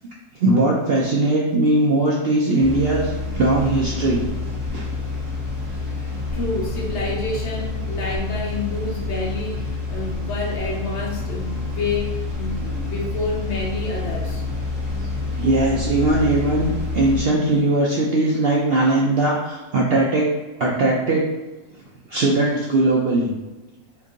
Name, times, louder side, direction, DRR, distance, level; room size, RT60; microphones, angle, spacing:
voice 1, 0.4-4.3 4.7-4.8 15.4-20.3 20.6-21.2 22.1-23.3, right 2 dB, 65° right, -3 dB, 0.6 m, -19 dB
sound 1, 2.6-17.2, left 3 dB, 25° right, 0.8 m, -28 dB
voice 2, 5.7-14.4, left 3 dB, 60° left, -3 dB, 0.9 m, -29 dB
2.9 x 2.6 x 3.6 m, 1.1 s
omnidirectional pair, 1.5 m